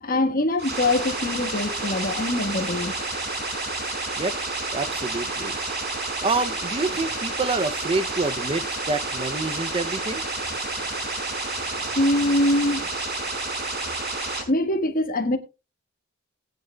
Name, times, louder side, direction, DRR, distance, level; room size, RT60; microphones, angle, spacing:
voice 1, 0.0-2.9 11.7-12.9 14.5-15.4, left 1 dB, 45° left, 1.5 m, -23 dB
sound 1, 0.6-14.4, right 2 dB, 55° right, 4.5 m, -30 dB
voice 2, 4.7-5.6 6.2-10.2, right 3 dB, 25° right, 0.6 m, -27 dB
20.0 x 9.3 x 2.3 m
head